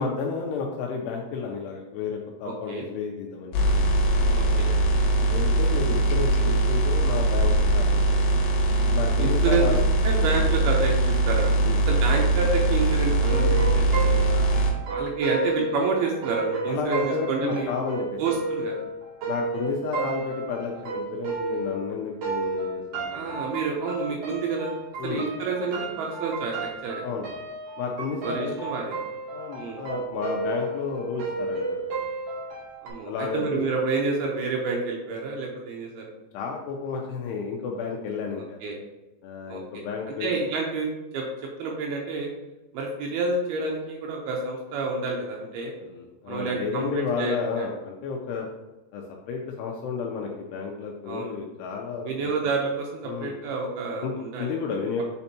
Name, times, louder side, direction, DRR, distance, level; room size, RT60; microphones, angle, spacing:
voice 1, 0.0-3.6 5.3-8.3 8.9-9.8 11.6-11.8 16.7-18.2 19.3-23.4 25.0-25.2 27.0-27.3 27.8-28.5 29.3-31.9 33.1-33.6 36.3-38.6 39.2-40.4 45.8-48.5 48.9-52.3 53.0-53.4 54.0-55.0, left 5 dB, 85° left, 1 dB, 2.5 m, -32 dB
voice 2, 2.4-2.9 4.3-4.7 9.2-9.8 10.0-11.5 11.9-14.3 14.9-17.7 18.2-18.7 23.1-27.0 28.2-29.0 29.5-29.8 32.8-36.1 38.6-38.8 39.5-39.6 40.1-40.9 41.1-41.2 41.6-42.3 42.7-45.7 46.3-47.7 51.0-51.4 52.0-54.5, right 4 dB, 80° right, 0 dB, 2.3 m, -29 dB
sound 1, 3.5-14.7, right 2 dB, 70° left, 2.3 m, -21 dB
sound 2, 13.3-21.9 22.2-32.9, right 3 dB, 55° right, 2.0 m, -32 dB
8.1 x 4.3 x 2.8 m, 1.1 s
omnidirectional pair, 5.3 m